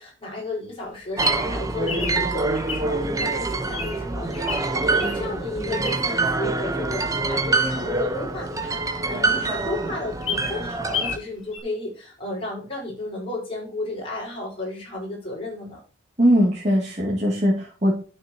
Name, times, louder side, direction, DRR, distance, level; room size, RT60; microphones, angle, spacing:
voice 1, 0.0-15.8, left 2 dB, 25° left, -4 dB, 4.7 m, -33 dB
Bird vocalization bird call bird song, 0.8-6.3 6.7-8.9 9.2-9.3 9.6-9.7 10.0-11.2 11.5-11.6, left 5 dB, 75° left, 2.9 m, -33 dB
sound 1, 1.2-11.2, right 3 dB, 15° right, 0.9 m, -25 dB
voice 2, 16.2-17.9, equal, 35° right, -5 dB, 2.6 m, -20 dB
12.5 x 6.5 x 2.9 m, 0.37 s
head